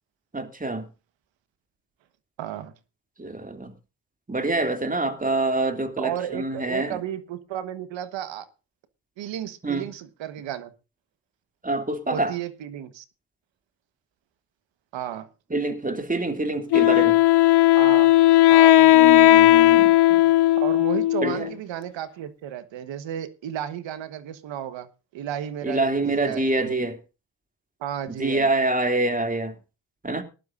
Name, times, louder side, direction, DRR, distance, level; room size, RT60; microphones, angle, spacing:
voice 1, 0.3-0.9 3.2-3.7 4.3-7.0 9.6-9.9 11.6-12.3 15.5-17.2 18.9-20.3 21.2-21.5 25.6-27.0 28.1-29.6 30.0-30.2, right 2 dB, 20° right, 2.7 m, -26 dB
voice 2, 2.4-2.7 6.0-8.5 9.2-10.7 12.1-13.0 14.9-15.3 17.7-18.1 18.5-18.9 20.6-26.8 27.8-28.5, right 10 dB, 80° right, 1.5 m, -33 dB
Wind instrument woodwind instrument, 16.7-21.5, left 15 dB, 65° left, 0.6 m, -16 dB
19.5 x 11.5 x 2.6 m
supercardioid pair, 55°, 44 cm